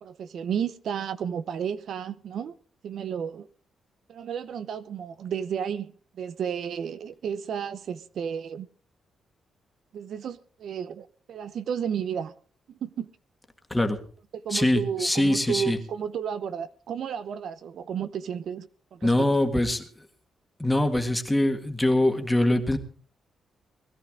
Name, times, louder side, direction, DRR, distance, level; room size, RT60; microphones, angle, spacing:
voice 1, 0.0-2.5 2.8-3.5 4.1-8.7 9.9-12.3 12.7-13.1 14.3-19.3, right 8 dB, 65° right, 0.8 m, -32 dB
voice 2, 14.5-15.8 19.0-19.9 20.6-22.8, left 1 dB, 5° left, 1.8 m, -23 dB
20.5 x 14.0 x 3.7 m
wide cardioid pair, 160°, 0 cm